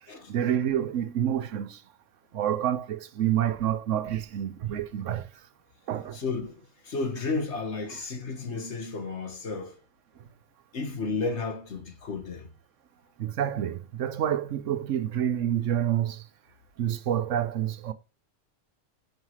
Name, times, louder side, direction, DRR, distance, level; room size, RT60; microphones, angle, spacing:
voice 1, 0.3-1.8 2.3-5.3 5.9-6.2 13.2-16.2 16.8-17.9, right 10 dB, 90° right, 1.1 m, -28 dB
voice 2, 6.1-6.6 6.8-9.8 10.7-12.5, left 4 dB, 70° left, 1.6 m, -32 dB
5.6 x 4.6 x 5.6 m
omnidirectional pair, 1.2 m